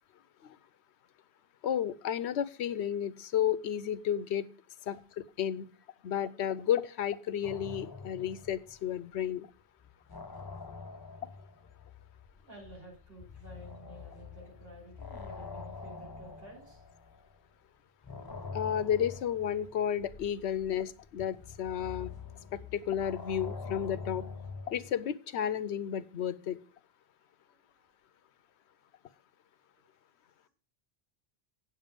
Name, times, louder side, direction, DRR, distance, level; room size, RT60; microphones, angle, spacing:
voice 1, 1.6-4.5 4.9-5.7 6.0-9.5 18.5-22.1 22.5-24.3 24.7-26.6, left 9 dB, 85° left, 16 dB, 0.9 m, -32 dB
sound 1, 7.4-9.3 9.6-17.5 18.0-24.9, left 4 dB, 25° left, 0.6 m, -45 dB
voice 2, 12.5-16.8 27.5-27.9, right 1 dB, 60° right, -3 dB, 5.9 m, -52 dB
8.7 x 8.0 x 5.1 m, 0.40 s
omnidirectional pair, 1.1 m